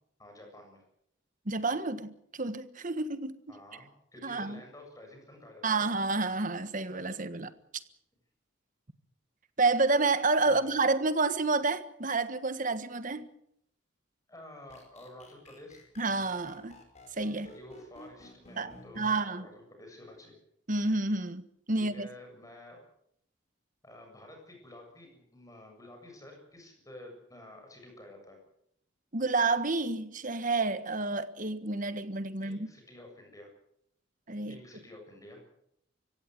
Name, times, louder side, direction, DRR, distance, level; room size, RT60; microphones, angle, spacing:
voice 1, 0.2-0.8 3.5-5.9 10.4-10.7 14.3-15.8 17.3-20.4 21.7-22.8 23.8-28.4 32.4-33.5 34.5-35.4, left 1 dB, 15° left, 7.5 m, -50 dB
voice 2, 1.5-2.1 2.4-3.3 4.2-4.6 5.6-7.5 9.6-13.3 16.0-16.7 17.2-17.5 18.6-19.5 20.7-22.1 29.1-32.7 34.3-34.6, right 3 dB, 40° right, 1.4 m, -29 dB
sound 1, 14.7-19.1, left 1 dB, 35° left, 5.5 m, -52 dB
25.5 x 16.5 x 7.9 m
head